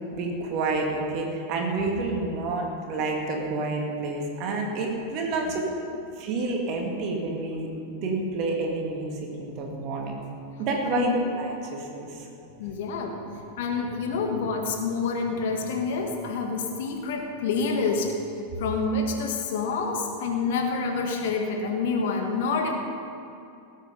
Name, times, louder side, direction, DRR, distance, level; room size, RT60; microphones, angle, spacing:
voice 1, 0.1-5.6 6.2-10.2 10.6-11.1 11.4-12.3, right 3 dB, 40° right, 1 dB, 2.3 m, -29 dB
voice 2, 12.6-13.2 13.5-18.2 18.6-22.7, left 4 dB, 55° left, 2 dB, 1.8 m, -27 dB
18.0 x 8.4 x 5.4 m, 2.6 s
figure-of-eight pair, 90°, 0 cm